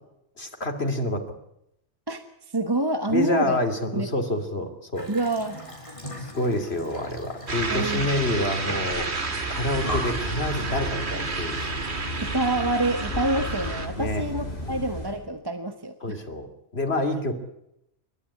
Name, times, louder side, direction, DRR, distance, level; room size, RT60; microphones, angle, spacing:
voice 1, 0.4-1.2 3.1-5.1 6.2-9.1 9.5-11.6 14.0-14.2 14.6-14.8 16.0-16.5 16.7-17.3, left 1 dB, 70° left, 5 dB, 3.2 m, -27 dB
voice 2, 2.5-3.6 3.9-4.1 5.1-5.6 7.7-8.2 12.2-16.2, right 2 dB, 20° right, 8 dB, 1.2 m, -27 dB
Water tap faucet / Sink (filling or washing) / Bathtub (filling or washing), 4.9-10.4, equal, 30° left, 4.3 m, -41 dB
sound 1, 7.5-13.9, right 3 dB, 75° right, 2.3 m, -31 dB
Breathing, 9.5-15.2, left 1 dB, 50° left, 5.5 m, -34 dB
29.5 x 13.0 x 9.9 m, 0.82 s
omnidirectional pair, 1.1 m